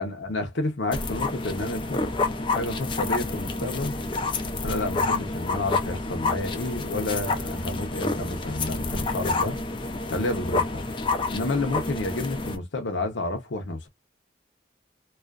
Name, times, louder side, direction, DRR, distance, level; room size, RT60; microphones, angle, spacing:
voice 1, 0.0-2.1 2.5-4.0 4.6-9.6 10.1-10.8 11.3-13.9, left 2 dB, 65° left, 0.7 m, -30 dB
sound 1, 0.9-12.6, left 3 dB, 25° left, 0.4 m, -29 dB
2.4 x 2.3 x 2.2 m
head